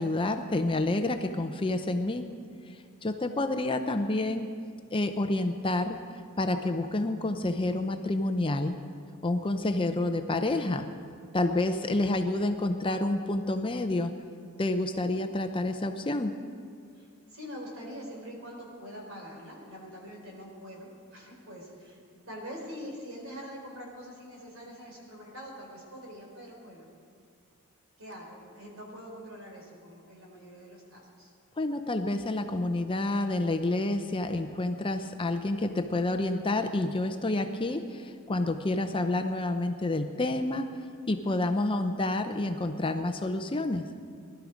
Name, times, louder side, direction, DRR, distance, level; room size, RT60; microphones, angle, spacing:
voice 1, 0.0-2.3 2.7-4.5 4.9-6.0 6.4-8.8 9.2-10.9 11.3-14.1 14.6-16.3 31.6-40.7 41.1-43.8, left 2 dB, 25° left, 7 dB, 0.6 m, -29 dB
voice 2, 16.9-22.0 22.3-26.9 28.0-31.3, equal, 60° right, -1 dB, 4.0 m, -44 dB
20.0 x 12.5 x 5.1 m, 2.2 s
head